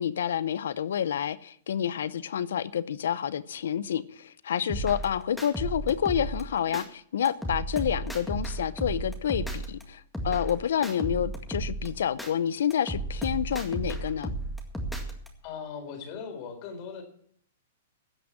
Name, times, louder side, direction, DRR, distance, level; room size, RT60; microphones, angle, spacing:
voice 1, 0.0-14.3, left 9 dB, 75° left, 0.6 m, -29 dB
sound 1, 4.7-6.9 7.3-9.8 10.1-12.3 12.7-15.3, right 2 dB, 5° left, 1.9 m, -34 dB
voice 2, 15.4-17.0, left 6 dB, 45° left, 3.8 m, -39 dB
16.5 x 6.2 x 7.3 m
hypercardioid pair, 135°, 0 cm